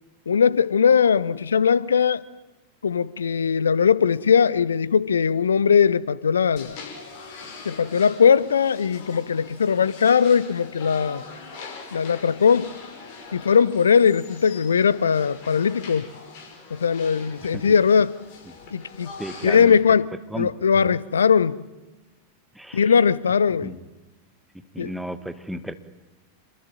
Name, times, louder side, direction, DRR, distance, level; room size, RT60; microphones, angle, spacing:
voice 1, 0.3-2.2 2.8-6.8 7.6-11.2 11.9-12.7 13.3-16.1 16.7-18.1 18.7-19.1 19.4-21.6 22.7-23.7 24.8-24.9, left 6 dB, 70° left, 0.9 m, -20 dB
sound 1, 6.6-19.6, left 4 dB, 45° left, 5.7 m, -42 dB
voice 2, 19.2-19.8 20.3-21.0 22.5-22.9 23.6-23.8 24.7-25.7, equal, 5° right, 1.7 m, -34 dB
26.5 x 21.5 x 9.0 m
figure-of-eight pair, 90°, 0 cm